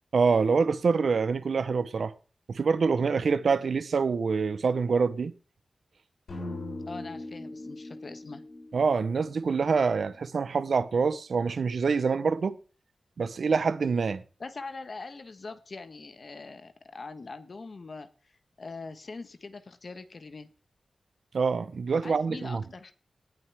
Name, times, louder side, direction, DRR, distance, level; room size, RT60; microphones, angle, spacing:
voice 1, 0.1-2.1 2.5-5.3 8.7-12.6 13.2-14.2 21.3-22.6, right 5 dB, 75° right, 0.9 m, -26 dB
sound 1, 6.3-10.4, left 2 dB, 80° left, 7.1 m, -41 dB
voice 2, 6.9-8.4 14.4-20.5 22.0-22.9, left 3 dB, 55° left, 1.3 m, -43 dB
18.5 x 7.9 x 3.5 m
wide cardioid pair, 90°, 0 cm